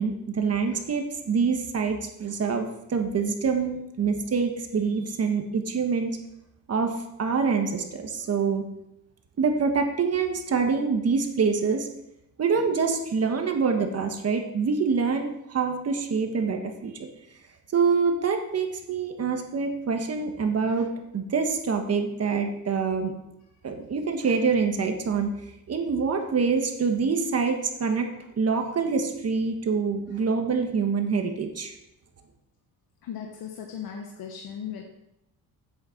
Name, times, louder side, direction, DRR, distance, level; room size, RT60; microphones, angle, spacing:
voice 1, 0.0-6.2 6.7-8.6 9.4-11.9 12.4-17.1 17.7-20.9 21.1-23.1 23.6-25.3 25.7-28.1 28.4-31.7, right 5 dB, 40° right, 4 dB, 1.4 m, -25 dB
voice 2, 33.0-34.8, left 8 dB, 80° left, 2 dB, 1.3 m, -37 dB
8.0 x 6.8 x 7.1 m, 0.85 s
cardioid pair, 130°, 36 cm